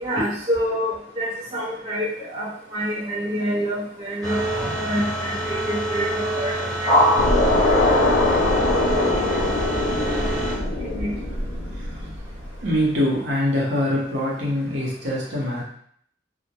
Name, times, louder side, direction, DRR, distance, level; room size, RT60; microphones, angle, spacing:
voice 1, 0.0-6.9 8.0-8.2 10.8-11.1, equal, 30° right, -7 dB, 0.5 m, -27 dB
sound 1, 4.2-10.5, right 1 dB, 20° left, 1.1 m, -24 dB
sound 2, 7.2-12.5, left 2 dB, 75° left, 0.5 m, -22 dB
voice 2, 12.6-15.6, left 1 dB, 65° right, -4 dB, 0.8 m, -23 dB
2.1 x 2.0 x 2.8 m, 0.62 s
head